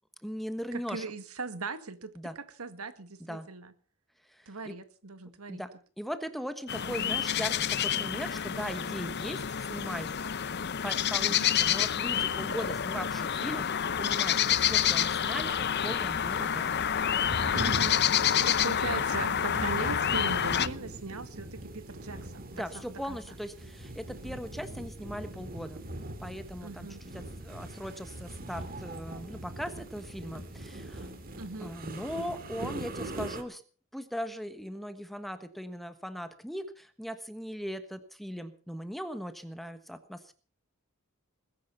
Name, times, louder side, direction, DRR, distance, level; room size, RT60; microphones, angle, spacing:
voice 1, 0.2-1.0 2.1-2.4 3.2-3.5 4.3-4.7 5.5-9.4 9.7-10.1 10.8-16.8 22.5-25.8 26.2-31.1 31.6-33.6 33.9-40.3, equal, ahead, 10 dB, 1.3 m, -39 dB
voice 2, 0.7-3.7 4.5-5.6 11.2-11.6 17.5-18.0 18.4-23.2 26.6-27.0 31.4-31.7, right 3 dB, 80° right, 11 dB, 1.8 m, -39 dB
sound 1, 6.7-20.7, left 9 dB, 50° left, 0.7 m, -28 dB
sound 2, 15.2-33.4, right 1 dB, 40° right, 2.1 m, -42 dB
21.0 x 10.5 x 5.6 m, 0.39 s
head